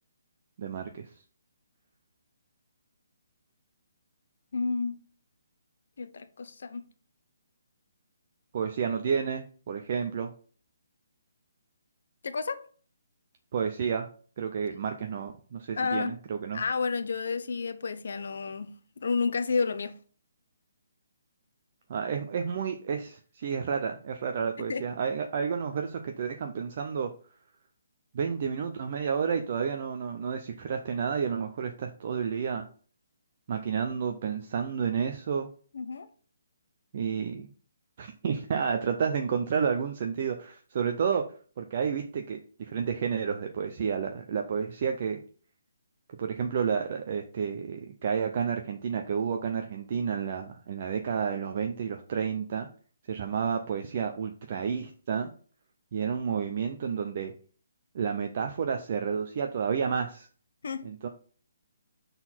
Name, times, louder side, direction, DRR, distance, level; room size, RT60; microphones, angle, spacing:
voice 1, 0.6-1.1 8.5-10.3 13.5-14.1 14.4-16.6 21.9-27.1 28.1-32.6 33.5-35.5 36.9-37.5 38.0-41.2 41.6-45.2 46.2-52.7 53.1-55.3 55.9-57.3 57.9-60.3 60.8-61.1, right 6 dB, 30° right, 0.4 m, -30 dB
voice 2, 4.5-5.0 6.0-6.9 12.2-12.6 15.8-16.2 16.5-18.7 19.0-20.0 24.7-24.9 35.7-36.1 60.6-60.9, left 4 dB, 50° left, 0.6 m, -30 dB
6.1 x 3.9 x 4.4 m
hypercardioid pair, 180°, 0 cm